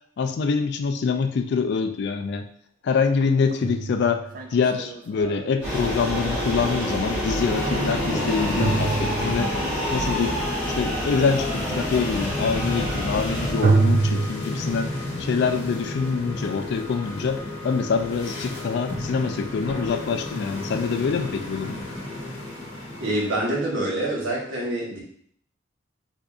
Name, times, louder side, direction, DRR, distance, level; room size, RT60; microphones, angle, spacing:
voice 1, 0.2-2.5 2.8-9.5 9.9-10.4 10.7-14.9 15.2-21.8, left 5 dB, 60° left, 7 dB, 0.3 m, -25 dB
sound 1, 2.2-2.3 3.2-6.9 8.6-9.7 13.6-14.3, right 3 dB, 45° right, 0.4 m, -25 dB
sound 2, 5.6-13.5, equal, 5° right, 1.4 m, -27 dB
sound 3, 7.1-23.7, left 1 dB, 85° left, 0.9 m, -33 dB
voice 2, 23.0-25.0, right 1 dB, 75° right, -4 dB, 1.2 m, -26 dB
4.7 x 2.6 x 2.3 m, 0.64 s
head